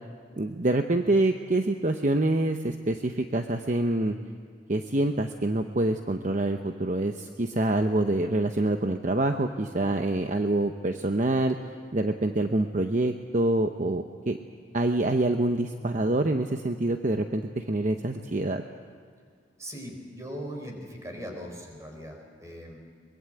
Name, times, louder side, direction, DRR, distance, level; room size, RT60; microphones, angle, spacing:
voice 1, 0.4-4.2 4.7-11.6 11.9-14.4 14.7-18.6, right 2 dB, 45° right, 6 dB, 0.8 m, -26 dB
voice 2, 19.6-22.8, equal, 15° right, 2 dB, 4.4 m, -40 dB
23.0 x 22.0 x 7.9 m, 2.1 s
head